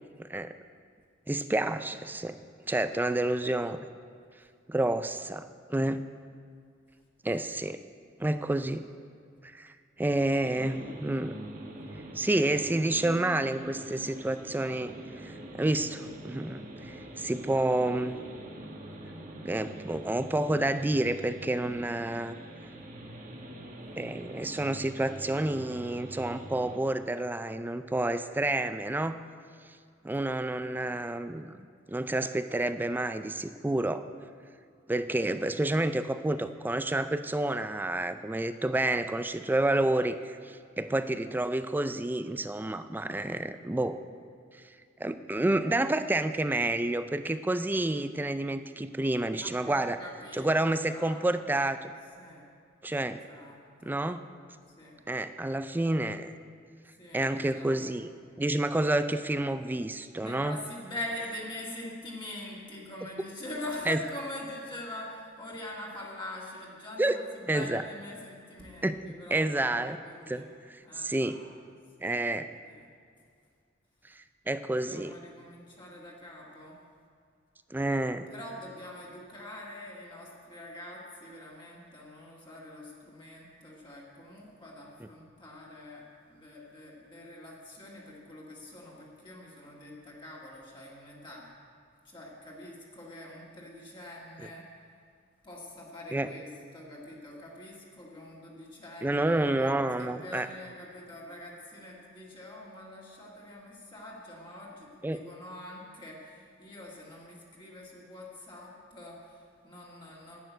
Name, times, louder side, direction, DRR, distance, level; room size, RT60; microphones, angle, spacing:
voice 1, 0.2-0.5 1.3-2.4 2.7-3.9 4.7-6.1 7.2-7.8 8.2-8.9 9.4-9.7 10.0-11.4 12.1-14.9 15.2-18.2 19.4-22.4 24.0-29.2 30.0-31.6 31.9-34.0 34.9-44.0 45.0-50.0 50.3-51.9 52.8-53.2 53.8-54.2 55.1-56.3 57.1-58.1 58.4-60.6 63.9-64.0 67.0-67.2 67.5-67.8 68.8-69.0 69.3-70.0 70.3-70.4 71.0-71.4 72.0-72.5 74.5-75.1 77.7-78.3 96.1-96.3 99.0-100.5 105.0-105.2, right 1 dB, 10° right, 11 dB, 0.3 m, -29 dB
sound 1, 10.4-26.8, right 1 dB, 40° right, 1.3 m, -44 dB
voice 2, 49.4-50.5 50.9-51.5 52.2-52.4 53.3-54.0 54.8-55.0 57.0-57.9 60.1-70.5 70.8-71.6 72.0-72.2 72.6-72.9 74.7-76.8 78.3-91.5 92.0-94.6 95.4-110.4, left 1 dB, 25° left, -4 dB, 1.9 m, -44 dB
10.5 x 6.7 x 9.2 m, 2.2 s
head